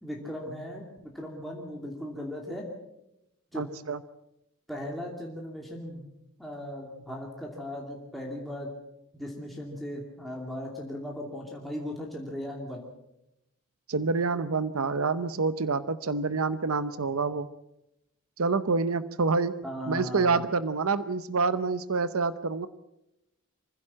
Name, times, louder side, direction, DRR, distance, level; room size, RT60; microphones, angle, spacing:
voice 1, 0.0-2.7 3.5-3.7 4.7-6.1 6.4-8.7 9.1-12.8 19.6-20.4, equal, ahead, -2 dB, 2.7 m, -37 dB
voice 2, 3.6-4.0 13.9-17.5 18.4-19.5 19.9-22.7, right 4 dB, 80° right, 14 dB, 0.8 m, -27 dB
25.0 x 16.0 x 7.5 m, 0.86 s
head